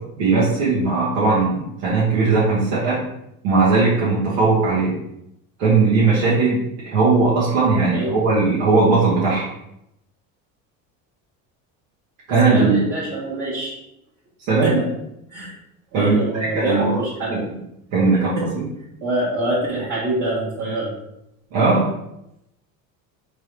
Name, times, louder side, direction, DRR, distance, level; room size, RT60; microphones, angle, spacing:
voice 1, 0.2-3.0 3.4-4.9 5.6-9.4 12.3-12.8 14.5-14.8 15.9-16.2 16.5-17.0 17.3-17.4 17.9-18.6 21.5-21.9, right 3 dB, 85° right, -8 dB, 1.5 m, -18 dB
voice 2, 12.4-13.8 14.6-14.9 15.3-15.6 15.9-17.5 18.4-18.5 19.0-21.0, right 2 dB, 45° right, -8 dB, 1.6 m, -24 dB
4.5 x 3.4 x 3.3 m, 0.82 s
supercardioid pair, 95°, 40 cm